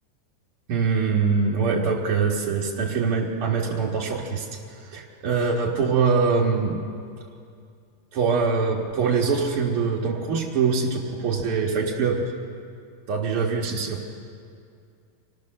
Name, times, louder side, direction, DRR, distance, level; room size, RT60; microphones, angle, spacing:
voice 1, 0.7-6.8 8.1-12.3 13.1-14.0, right 5 dB, 55° right, -3 dB, 1.6 m, -23 dB
26.5 x 17.0 x 6.5 m, 2.4 s
omnidirectional pair, 4.6 m